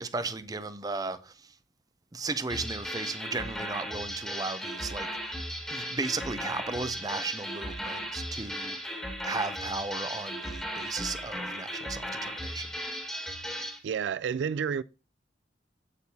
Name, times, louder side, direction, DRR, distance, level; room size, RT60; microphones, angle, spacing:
voice 1, 0.0-1.5 2.1-5.4 5.7-9.0 9.2-12.7, right 3 dB, 20° right, 0.6 m, -35 dB
sound 1, 2.5-13.8, equal, 5° left, 1.6 m, -36 dB
voice 2, 13.8-14.8, right 7 dB, 80° right, 0.3 m, -30 dB
8.5 x 8.2 x 2.8 m
head